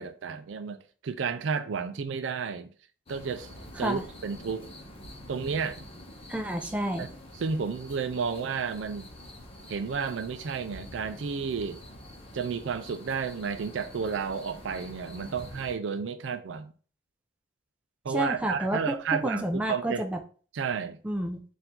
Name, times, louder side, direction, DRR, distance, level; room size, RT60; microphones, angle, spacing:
voice 1, 0.0-2.7 3.1-4.7 5.3-5.9 7.0-7.1 7.4-9.1 9.7-11.8 12.3-16.7 18.0-20.0 20.5-21.0, right 5 dB, 75° right, 0.4 m, -32 dB
sound 1, 3.1-15.7, left 1 dB, 30° left, 1.0 m, -46 dB
voice 2, 6.3-7.1 18.1-19.0 19.2-20.2 21.0-21.4, right 1 dB, 5° right, 0.5 m, -30 dB
4.6 x 2.6 x 3.7 m
head